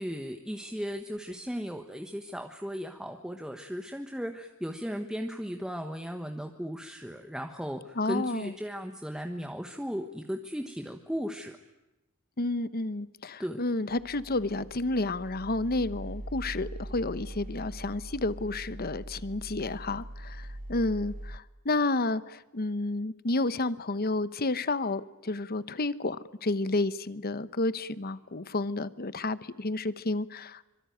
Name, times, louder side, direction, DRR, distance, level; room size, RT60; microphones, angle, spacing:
voice 1, 0.0-11.6 13.4-13.6, equal, 5° right, 4 dB, 1.3 m, -36 dB
voice 2, 8.0-8.5 12.4-30.6, left 2 dB, 45° left, 15 dB, 1.0 m, -31 dB
sound 1, 13.9-21.4, right 1 dB, 40° right, 1.3 m, -42 dB
25.0 x 24.0 x 9.3 m, 0.95 s
head